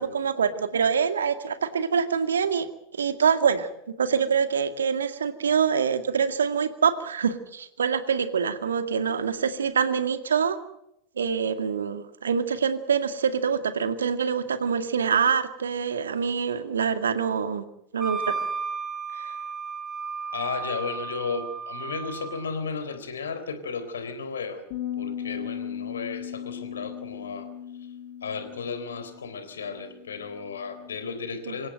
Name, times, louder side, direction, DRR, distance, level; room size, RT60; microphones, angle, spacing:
voice 1, 0.0-2.7 2.9-10.6 11.2-17.7 17.9-18.4 19.1-19.3 31.5-31.6, right 6 dB, 70° right, 10 dB, 2.2 m, -25 dB
Wind instrument woodwind instrument, 18.0-22.5, right 5 dB, 15° right, 2.5 m, -34 dB
voice 2, 20.3-24.6 25.0-27.5 28.2-31.7, left 5 dB, 65° left, 11 dB, 3.8 m, -34 dB
sound 1, 24.7-31.0, left 9 dB, 45° left, 5.5 m, -37 dB
26.5 x 16.5 x 7.9 m, 0.79 s
figure-of-eight pair, 90°, 0 cm